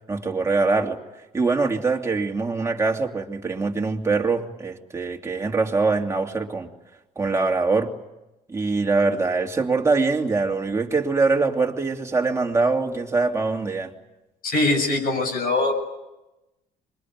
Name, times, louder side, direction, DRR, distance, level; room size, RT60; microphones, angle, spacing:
voice 1, 0.1-1.0 1.3-6.7 7.2-8.0 8.5-13.9, right 3 dB, 15° right, 2.8 m, -23 dB
voice 2, 14.4-15.7, left 2 dB, 60° left, 7.7 m, -22 dB
25.5 x 22.5 x 9.5 m
cardioid pair, 110°, 17 cm